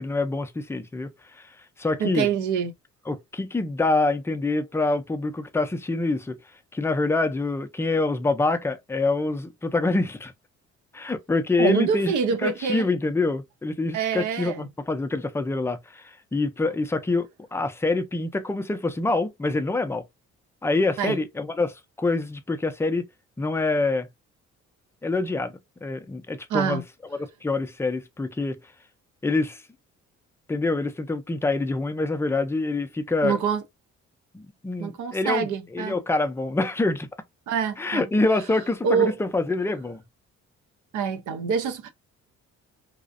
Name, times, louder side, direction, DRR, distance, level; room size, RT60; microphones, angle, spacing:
voice 1, 0.0-1.5 1.8-2.3 3.1-6.4 6.7-10.3 10.9-12.1 12.4-20.0 20.6-23.0 23.4-24.1 25.0-26.8 27.4-28.6 29.2-29.6 30.5-33.4 34.3-37.1 37.8-40.0, left 3 dB, 10° left, 0.4 m, -26 dB
voice 2, 2.0-2.7 11.6-12.9 13.9-14.7 21.0-21.2 26.5-26.8 33.2-33.6 34.8-36.0 37.5-38.1 38.8-39.1 40.9-41.9, right 6 dB, 75° right, 0.6 m, -25 dB
2.5 x 2.0 x 2.4 m
cardioid pair, 90°, 30 cm